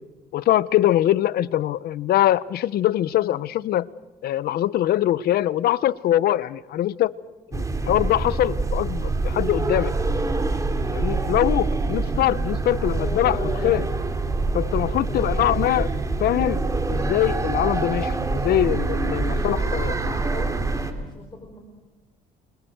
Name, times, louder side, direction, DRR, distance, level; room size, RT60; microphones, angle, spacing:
voice 1, 0.3-3.9 4.2-7.1 7.5-9.9 10.9-13.9 14.5-15.9 16.2-16.6 16.9-19.9, left 13 dB, 65° left, 0.9 m, -23 dB
sound 1, 7.5-20.9, right 3 dB, 20° right, 2.9 m, -25 dB
voice 2, 12.9-13.8 14.9-15.6 19.1-20.6 21.0-21.6, left 2 dB, 25° left, 5.1 m, -37 dB
29.5 x 25.0 x 8.0 m
cardioid pair, 110°, 17 cm